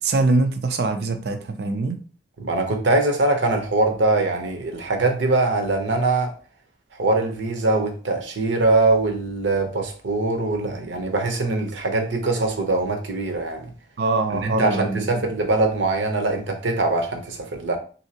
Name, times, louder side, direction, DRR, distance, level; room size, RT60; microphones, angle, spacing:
voice 1, 0.0-2.0 14.0-15.3, right 3 dB, 60° right, 0.4 m, -23 dB
voice 2, 2.4-6.3 6.9-13.7 14.4-17.8, right 2 dB, 90° right, 0.8 m, -22 dB
3.2 x 2.7 x 2.8 m
head